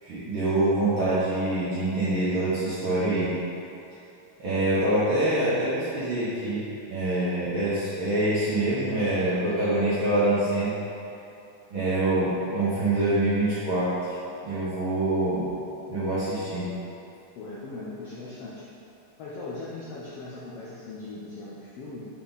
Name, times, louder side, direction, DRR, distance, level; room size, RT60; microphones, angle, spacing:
voice 1, 0.0-3.3 4.4-6.6 6.9-10.8 11.7-14.1 14.4-15.5 15.9-16.7, right 1 dB, 60° right, -12 dB, 1.4 m, -25 dB
voice 2, 17.3-18.6 19.2-22.1, left 2 dB, 90° left, -7 dB, 1.3 m, -39 dB
6.0 x 5.9 x 4.1 m, 2.7 s
omnidirectional pair, 3.9 m